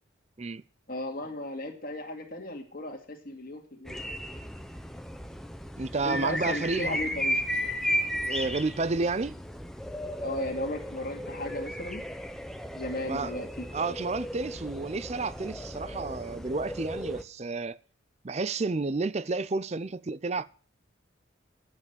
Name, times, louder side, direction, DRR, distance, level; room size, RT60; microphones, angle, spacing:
voice 1, 0.9-4.0 6.0-7.4 10.2-12.0 12.7-13.7, left 1 dB, 45° left, 2.2 m, -35 dB
sound 1, 3.8-17.2, equal, ahead, 0.7 m, -35 dB
voice 2, 5.8-7.2 8.2-9.4 13.0-13.3 13.7-17.8 18.2-20.5, right 3 dB, 35° right, 0.5 m, -31 dB
9.8 x 7.6 x 8.0 m
head